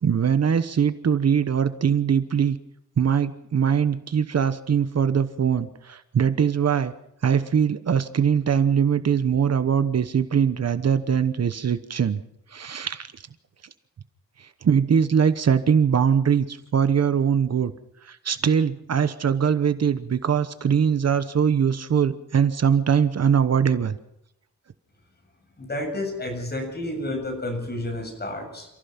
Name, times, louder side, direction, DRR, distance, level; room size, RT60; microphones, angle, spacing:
voice 1, 0.0-2.6 3.0-6.9 7.2-12.2 12.5-13.1 14.6-17.7 18.1-23.9, right 7 dB, 60° right, 12 dB, 1.1 m, -22 dB
voice 2, 25.6-28.7, left 1 dB, 35° left, 3 dB, 7.4 m, -30 dB
29.0 x 15.5 x 6.0 m, 0.80 s
wide cardioid pair, 150°, 29 cm